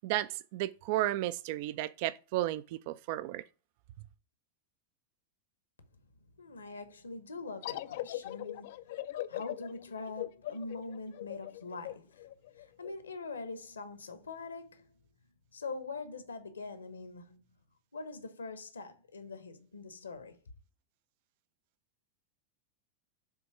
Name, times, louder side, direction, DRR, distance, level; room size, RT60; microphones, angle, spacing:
voice 1, 0.0-3.4, right 15 dB, 50° right, 0.3 m, -33 dB
voice 2, 6.4-8.9 9.3-12.3 12.5-14.9 15.5-17.4 17.9-20.4, left 3 dB, 75° left, 0.9 m, -43 dB
sound 1, 7.6-12.9, left 14 dB, 55° left, 0.3 m, -40 dB
7.1 x 3.4 x 4.5 m
figure-of-eight pair, 90°, 0 cm